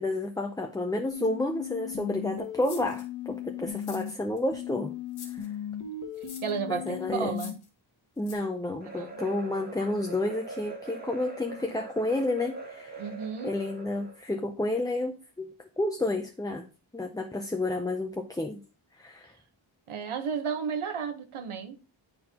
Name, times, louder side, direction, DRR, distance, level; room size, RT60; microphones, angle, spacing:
voice 1, 0.0-4.9 5.3-5.5 6.7-7.4 8.2-13.1 13.4-16.7 16.9-18.6 18.9-19.3, left 2 dB, 10° left, 0.4 m, -31 dB
sound 1, 1.1-4.1 4.5-7.5, left 8 dB, 40° left, 1.1 m, -37 dB
sound 2, 2.6-3.0 3.7-4.4 5.1-5.5 6.2-6.6 7.3-7.7 8.2-8.3, left 5 dB, 85° left, 1.6 m, -46 dB
voice 2, 6.4-7.5 9.0-9.2 13.0-13.5 19.9-21.8, right 7 dB, 80° right, 1.1 m, -33 dB
sound 3, 8.8-14.2, right 3 dB, 20° right, 1.5 m, -42 dB
9.4 x 4.2 x 2.8 m
wide cardioid pair, 130°, 48 cm